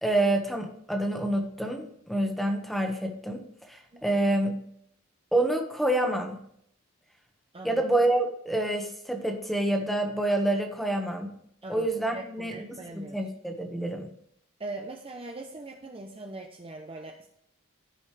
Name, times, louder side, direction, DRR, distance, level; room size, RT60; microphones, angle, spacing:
voice 1, 0.0-3.4 3.7-4.5 5.3-6.4 7.6-11.3 11.7-12.6 12.9-14.1, right 1 dB, ahead, 3 dB, 1.4 m, -27 dB
voice 2, 7.5-7.8 11.6-13.2 14.6-17.3, right 2 dB, 25° right, 2 dB, 0.8 m, -41 dB
15.0 x 5.4 x 3.3 m, 0.69 s
head